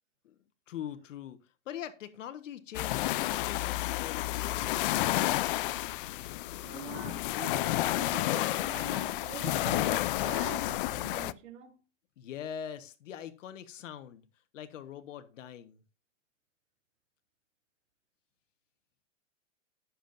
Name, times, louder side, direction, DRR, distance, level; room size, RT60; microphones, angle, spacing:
voice 1, 0.7-5.3 12.2-14.3 14.5-15.8, left 9 dB, 80° left, 1.3 m, -43 dB
sound 1, 2.7-11.3, left 16 dB, 45° left, 0.5 m, -31 dB
voice 2, 6.6-11.8, right 8 dB, 80° right, 3.4 m, -44 dB
16.5 x 7.1 x 2.6 m
supercardioid pair, 155°, 37 cm